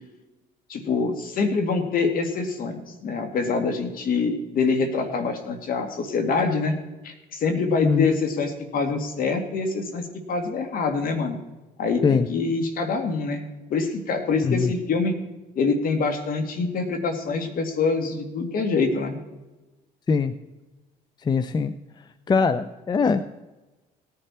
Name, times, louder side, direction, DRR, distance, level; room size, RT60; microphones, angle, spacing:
voice 1, 0.7-6.7 7.0-11.4 11.8-13.4 13.7-15.2 15.6-19.2, left 4 dB, 55° left, 6 dB, 2.2 m, -25 dB
voice 2, 7.8-8.2 12.0-12.3 14.4-14.7 20.1-20.3 21.3-21.7 22.3-23.2, left 5 dB, 25° left, 12 dB, 0.6 m, -22 dB
17.5 x 10.0 x 4.4 m, 1.1 s
cardioid pair, 110°, 17 cm